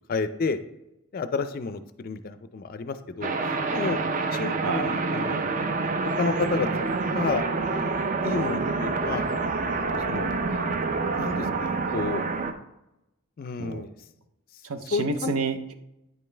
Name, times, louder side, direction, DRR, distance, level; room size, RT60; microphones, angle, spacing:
voice 1, 0.1-0.6 1.1-3.3 3.7-4.0 4.3-5.6 6.2-6.7 7.1-7.4 8.2-9.3 9.9-10.3 11.1-12.3 13.4-13.9 14.9-15.3, left 4 dB, 45° left, 11 dB, 0.4 m, -30 dB
sound 1, 3.2-12.5, right 3 dB, 40° right, 0.4 m, -27 dB
voice 2, 14.7-15.7, right 4 dB, 90° right, 10 dB, 0.6 m, -29 dB
9.0 x 5.3 x 3.3 m, 0.90 s
head